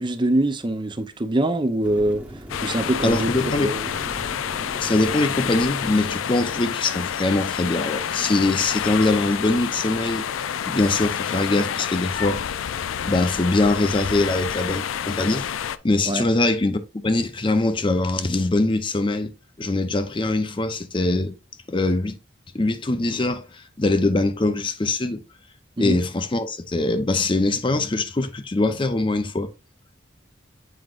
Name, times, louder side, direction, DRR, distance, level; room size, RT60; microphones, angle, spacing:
voice 1, 0.0-2.2 2.6-3.9 16.1-16.3 25.8-26.0, right 1 dB, 25° right, 0.6 m, -23 dB
sound 1, 1.8-9.2, equal, 10° right, 1.0 m, -41 dB
sound 2, 2.5-15.8, left 8 dB, 90° left, 0.4 m, -28 dB
voice 2, 3.0-3.7 4.8-10.2 10.6-12.5 13.0-15.5 15.8-19.3 19.6-21.4 21.7-22.2 22.5-25.2 25.8-29.5, left 2 dB, 25° left, 0.6 m, -22 dB
7.8 x 5.0 x 2.4 m
head